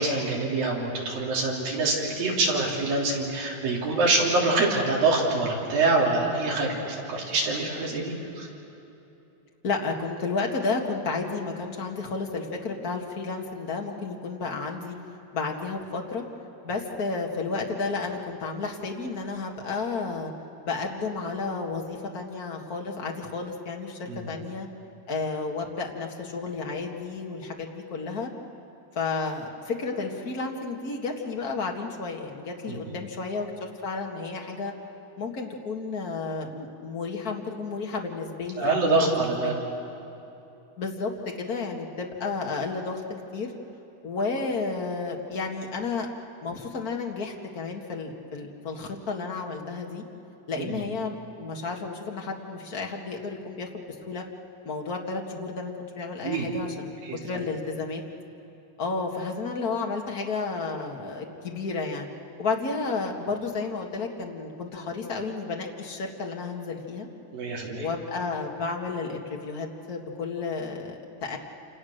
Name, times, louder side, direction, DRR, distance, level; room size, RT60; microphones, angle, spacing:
voice 1, 0.0-8.5 24.1-24.3 32.7-32.8 38.6-39.6 50.6-50.8 56.2-56.5 57.0-57.2 67.3-67.9, right 3 dB, 60° right, -3 dB, 5.1 m, -25 dB
voice 2, 9.6-14.9 15.3-16.2 16.6-20.3 20.6-24.7 25.1-28.3 28.9-34.7 35.2-39.1 40.8-43.0 43.3-43.5 44.0-46.1 46.4-50.0 50.5-54.2 54.6-56.9 57.2-58.0 58.8-62.1 62.4-67.1 67.8-71.4, left 4 dB, 55° left, 1 dB, 1.0 m, -32 dB
28.5 x 28.0 x 6.6 m, 2.9 s
omnidirectional pair, 4.6 m